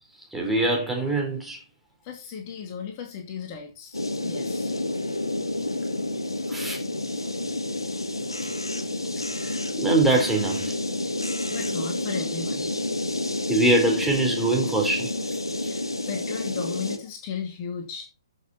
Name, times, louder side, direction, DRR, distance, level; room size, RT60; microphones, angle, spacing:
voice 1, 0.3-1.6 6.5-6.8 8.4-8.5 9.4-10.7 13.5-15.1, right 2 dB, ahead, 4.1 m, -23 dB
voice 2, 2.0-4.7 5.1-5.2 5.8-5.9 6.5-6.6 7.2-7.3 7.9-8.1 11.5-12.7 15.6-18.1, left 6 dB, 35° left, 2.6 m, -36 dB
sound 1, 3.9-17.0, left 2 dB, 80° left, 2.0 m, -29 dB
14.0 x 6.8 x 4.3 m
figure-of-eight pair, 125°, 3 cm